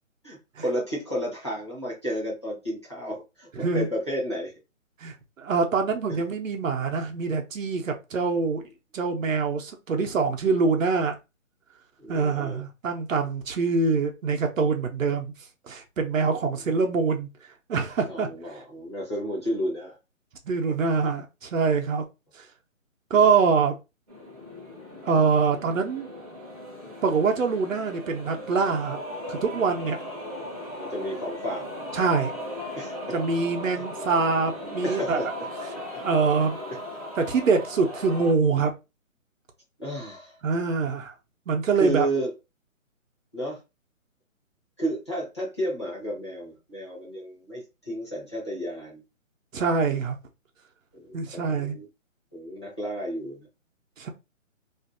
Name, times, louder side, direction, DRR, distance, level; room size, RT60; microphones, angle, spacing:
voice 1, 0.2-4.5 12.0-12.6 18.1-20.0 30.8-31.7 32.7-33.2 33.6-33.8 34.8-35.3 35.7-36.0 39.8-40.4 41.8-42.3 43.3-43.6 44.8-49.0 50.9-51.8 52.3-53.5, right 1 dB, 20° left, 0.7 m, -32 dB
voice 2, 3.6-3.9 5.0-8.6 8.9-11.2 12.1-15.3 15.6-17.3 17.7-18.3 20.5-22.0 22.4-22.5 23.1-23.7 25.0-26.1 27.0-29.0 29.3-30.0 31.9-32.3 33.1-35.2 36.0-36.6 37.2-38.7 40.4-41.1 41.5-42.1 49.5-50.2 51.1-51.8 54.0-54.1, right 4 dB, 75° right, 0.7 m, -24 dB
sound 1, 24.1-38.3, left 1 dB, 30° right, 0.6 m, -37 dB
2.6 x 2.4 x 2.5 m
hypercardioid pair, 175°, 40 cm